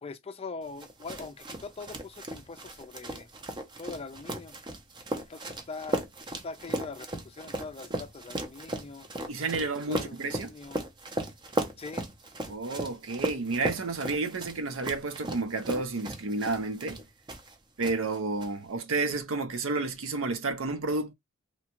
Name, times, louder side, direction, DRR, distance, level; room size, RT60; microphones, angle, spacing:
voice 1, 0.0-3.3 3.8-4.6 5.2-6.1 6.4-9.1 9.6-10.8 11.8-12.1, left 4 dB, 30° left, 0.4 m, -42 dB
sound 1, 0.8-17.5 17.8-18.5, right 1 dB, 25° right, 0.5 m, -36 dB
voice 2, 9.3-10.5 12.5-17.0 17.8-21.1, right 3 dB, 70° right, 0.6 m, -31 dB
2.9 x 2.3 x 2.8 m
head